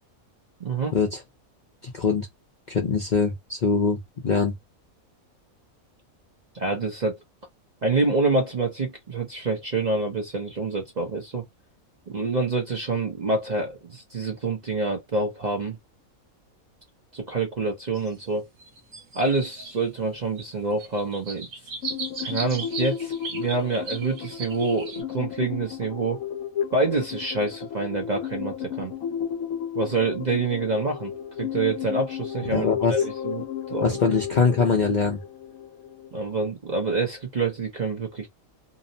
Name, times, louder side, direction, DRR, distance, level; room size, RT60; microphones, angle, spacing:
voice 1, 0.6-0.9 6.5-7.2 7.8-11.4 12.1-15.8 17.1-18.5 19.1-21.5 22.2-26.2 26.7-28.9 29.7-31.1 31.4-33.4 33.7-33.9 36.1-38.3, right 3 dB, 45° right, 0.6 m, -27 dB
voice 2, 1.8-2.3 2.7-4.5 32.5-33.1 33.8-35.2, left 5 dB, 50° left, 0.5 m, -23 dB
sound 1, 17.9-18.1 18.6-20.1 20.4-20.5 20.8-25.0, right 4 dB, 70° right, 1.2 m, -37 dB
sound 2, 21.8-36.2, left 9 dB, 75° left, 1.0 m, -33 dB
2.8 x 2.0 x 2.6 m
omnidirectional pair, 1.5 m